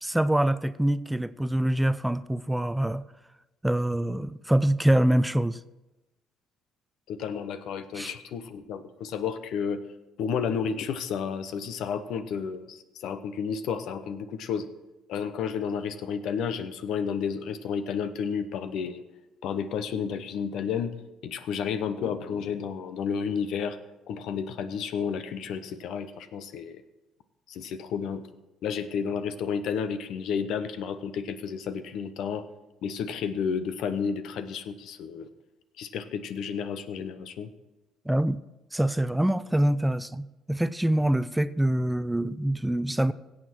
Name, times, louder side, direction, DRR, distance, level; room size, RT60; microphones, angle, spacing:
voice 1, 0.0-3.1 3.6-5.6 7.9-8.1 38.1-38.4 38.7-43.1, right 1 dB, 5° right, 15 dB, 0.5 m, -25 dB
voice 2, 7.1-9.8 10.2-14.7 15.1-19.0 19.4-21.0 21.2-23.8 24.1-26.8 27.5-28.3 28.6-32.5 32.8-35.3 35.8-37.5, left 6 dB, 70° left, 11 dB, 0.8 m, -31 dB
17.0 x 7.4 x 4.4 m, 1.0 s
hypercardioid pair, 60°, 0 cm